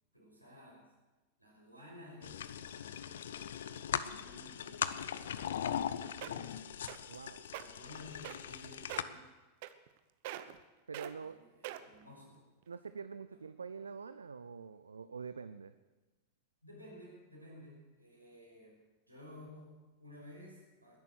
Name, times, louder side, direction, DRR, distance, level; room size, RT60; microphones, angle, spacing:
voice 1, 0.1-0.9 1.4-2.4 3.1-6.5 7.5-9.3 11.1-12.4 13.3-13.4 16.6-21.0, left 1 dB, 90° right, -3 dB, 5.7 m, -55 dB
sound 1, 2.2-9.0, left 9 dB, 60° left, 0.7 m, -39 dB
sound 2, 5.9-6.0 6.2-6.5 6.9-7.2 7.5-7.6 8.2-8.6 8.9-9.2 9.6-10.0 10.2-10.6 10.9-11.1 11.6-12.0 12.6-12.7, right 14 dB, 50° right, 0.9 m, -43 dB
voice 2, 7.1-7.4 10.9-11.4 12.7-15.7, right 5 dB, 75° right, 13 dB, 0.5 m, -45 dB
20.5 x 11.0 x 6.3 m, 1.1 s
figure-of-eight pair, 90°, 0 cm